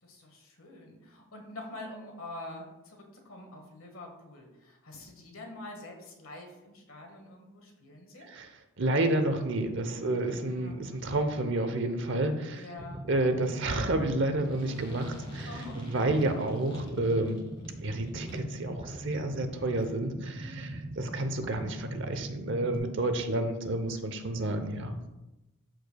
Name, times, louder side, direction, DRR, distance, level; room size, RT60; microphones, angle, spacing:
voice 1, 0.0-8.4 10.5-11.0 12.5-13.1 15.5-15.9 19.7-19.9 20.3-20.8 23.1-23.5, left 2 dB, 70° left, 2 dB, 1.6 m, -46 dB
voice 2, 8.8-12.6 13.1-15.5 15.8-17.4 17.8-25.0, right 2 dB, 55° right, 8 dB, 0.8 m, -30 dB
sound 1, 12.8-22.8, right 1 dB, 25° right, 0.7 m, -41 dB
sound 2, 14.4-18.6, left 1 dB, 25° left, 1.5 m, -50 dB
13.0 x 4.6 x 2.3 m, 0.97 s
head